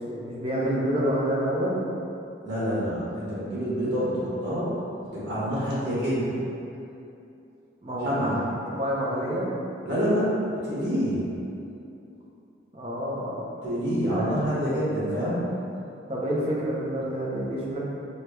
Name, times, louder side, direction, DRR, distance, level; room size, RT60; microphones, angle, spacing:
voice 1, 0.0-1.9 7.8-8.4 8.7-9.5 12.7-13.4 14.1-14.3 16.1-17.8, equal, 30° right, -5 dB, 0.6 m, -28 dB
voice 2, 2.4-4.7 5.1-6.3 8.0-8.3 9.8-10.3 10.6-11.2 13.6-15.4, equal, 65° right, -10 dB, 1.4 m, -27 dB
4.7 x 2.2 x 3.1 m, 2.7 s
head